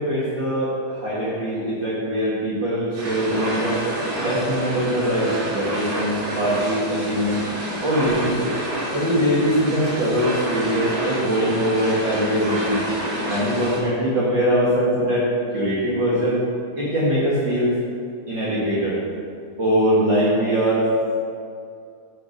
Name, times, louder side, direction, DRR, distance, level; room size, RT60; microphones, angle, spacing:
voice 1, 0.0-3.8 4.2-7.4 7.8-8.5 8.9-12.8 13.3-15.3 15.5-16.4 16.8-17.7 18.3-19.0 19.6-20.9, equal, 45° right, -8 dB, 1.6 m, -22 dB
Freight Train Passing, 3.0-13.8, right 1 dB, 70° right, 4.3 m, -29 dB
10.5 x 6.2 x 5.1 m, 2.4 s
omnidirectional pair, 4.6 m